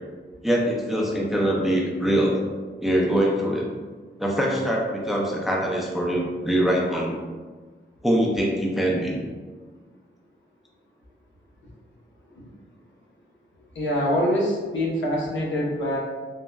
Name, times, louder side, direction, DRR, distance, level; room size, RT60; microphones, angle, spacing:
voice 1, 0.4-2.4 2.8-3.6 4.2-7.2 8.0-9.2, equal, ahead, -2 dB, 0.4 m, -23 dB
voice 2, 13.7-16.0, equal, 80° left, -4 dB, 0.7 m, -24 dB
3.5 x 2.0 x 2.2 m, 1.5 s
wide cardioid pair, 105°, 19 cm